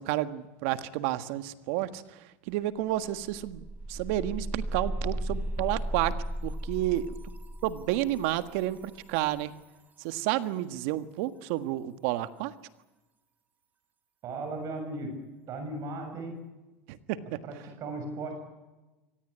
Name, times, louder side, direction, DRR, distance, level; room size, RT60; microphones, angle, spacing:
voice 1, 0.0-2.0 2.5-6.1 6.4-7.1 7.6-9.5 10.0-12.5 17.1-17.2, right 14 dB, 70° right, 12 dB, 1.6 m, -30 dB
sound 1, 2.5-2.6 2.9-9.7, right 1 dB, 25° right, 3.8 m, -36 dB
voice 2, 14.2-15.1 15.5-16.3 17.4-18.3, right 2 dB, 45° right, 4 dB, 7.0 m, -36 dB
24.5 x 18.5 x 9.9 m, 1.1 s
supercardioid pair, 110°, 7 cm